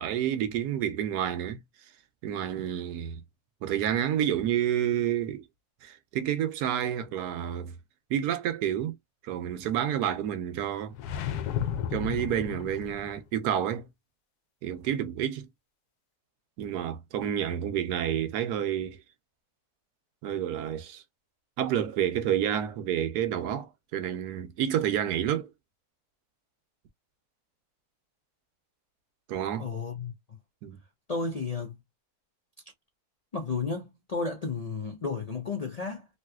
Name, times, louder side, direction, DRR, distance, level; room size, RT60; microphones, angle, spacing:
voice 1, 0.0-1.6 2.2-3.2 3.6-5.5 5.8-7.7 8.1-8.9 9.2-10.9 11.9-13.9 14.6-15.5 16.6-19.0 20.2-21.0 21.6-25.5 29.3-29.7 30.6-30.8, right 10 dB, 90° right, 1.2 m, -29 dB
sound 1, 10.9-13.2, left 9 dB, 80° left, 1.1 m, -33 dB
voice 2, 29.6-30.1 31.1-31.8 33.3-36.1, left 4 dB, 50° left, 0.4 m, -32 dB
3.2 x 2.8 x 2.2 m
omnidirectional pair, 1.6 m